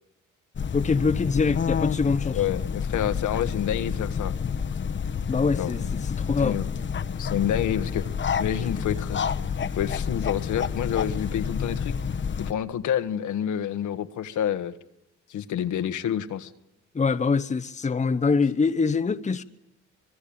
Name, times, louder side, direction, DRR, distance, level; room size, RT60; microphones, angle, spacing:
sound 1, 0.6-12.5, left 6 dB, 40° left, 1.1 m, -29 dB
voice 1, 0.7-2.4 5.3-5.8 6.3-6.6 16.9-19.4, left 4 dB, 25° left, 1.0 m, -24 dB
voice 2, 2.0-4.3 5.6-5.7 6.4-6.7 7.2-8.1 8.4-12.0 12.4-14.7 15.3-16.5, left 10 dB, 75° left, 1.5 m, -28 dB
25.5 x 20.5 x 8.7 m
cardioid pair, 90°, 30 cm